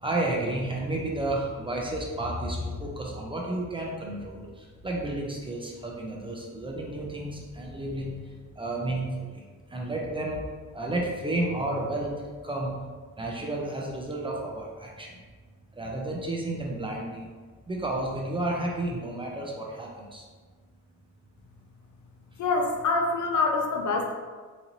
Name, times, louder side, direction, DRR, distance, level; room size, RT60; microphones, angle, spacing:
voice 1, 0.0-4.5 4.8-8.1 8.6-9.1 9.7-10.4 10.7-12.1 12.4-12.7 13.2-15.2 15.8-17.3 17.7-20.2, right 1 dB, 15° right, -2 dB, 0.4 m, -31 dB
voice 2, 22.4-24.1, left 3 dB, 70° left, 2 dB, 0.6 m, -25 dB
4.0 x 2.6 x 2.9 m, 1.5 s
wide cardioid pair, 160°, 30 cm